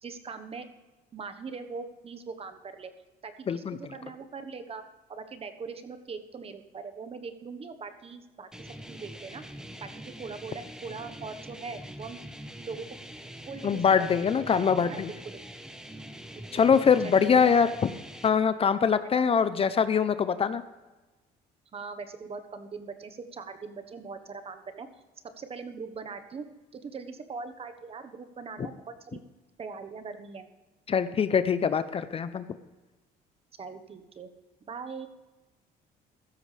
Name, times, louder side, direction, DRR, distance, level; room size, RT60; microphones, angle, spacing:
voice 1, 0.0-0.7 1.1-2.9 3.2-4.8 5.1-9.4 9.8-12.2 12.6-13.0 13.4-13.8 14.1-14.3 14.5-15.4 16.4-16.5 17.0-17.7 19.1-19.2 21.7-24.9 25.4-26.5 26.7-29.2 29.6-30.5 33.6-34.3 34.7-35.1, right 5 dB, 35° right, 8 dB, 1.2 m, -41 dB
voice 2, 3.5-3.8 13.6-15.1 16.5-17.7 18.2-20.6 30.9-32.4, left 6 dB, 35° left, 13 dB, 0.6 m, -23 dB
sound 1, 8.5-18.3, right 1 dB, 5° right, 1.1 m, -44 dB
15.5 x 13.0 x 3.3 m, 1.1 s
cardioid pair, 110°, 17 cm